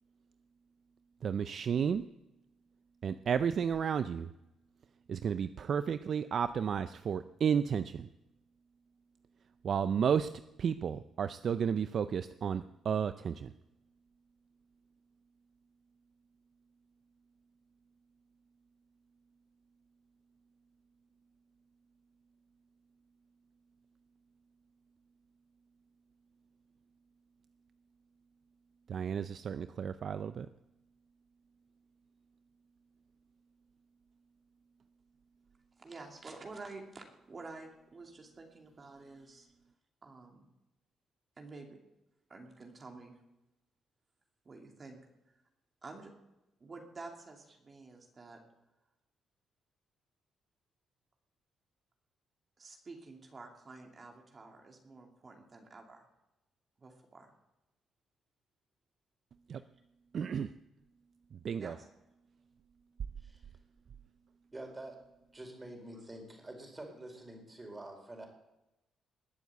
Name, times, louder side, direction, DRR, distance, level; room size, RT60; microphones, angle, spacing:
voice 1, 1.2-2.0 3.0-4.3 5.1-8.1 9.6-10.3 10.6-13.5 28.9-30.5 59.5-59.6 60.1-60.5 61.3-61.8, right 7 dB, 55° right, 12 dB, 0.5 m, -32 dB
voice 2, 35.8-39.5 40.0-40.5 41.4-41.7 42.3-43.1 44.4-45.0 45.8-46.1 46.6-48.4 52.6-56.1 56.8-57.3 61.6-61.9, right 3 dB, 35° right, 2 dB, 2.6 m, -50 dB
voice 3, 64.5-65.0 65.3-68.3, right 1 dB, 20° right, 3 dB, 4.5 m, -47 dB
20.5 x 7.2 x 8.2 m, 0.95 s
cardioid pair, 90°, 0 cm